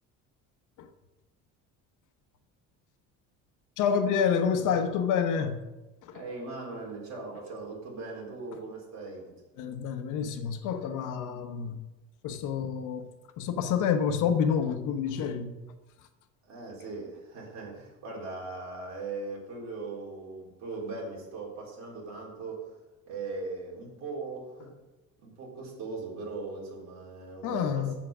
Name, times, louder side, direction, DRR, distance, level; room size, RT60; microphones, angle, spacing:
voice 1, 3.8-5.6 6.0-6.2 9.6-11.8 12.2-15.5 27.4-27.9, left 7 dB, 65° left, 1.0 m, -28 dB
voice 2, 6.1-9.3 16.4-22.6 23.1-24.7 25.2-28.0, right 3 dB, 55° right, 3.9 m, -39 dB
7.5 x 7.2 x 6.0 m
cardioid pair, 145°, 33 cm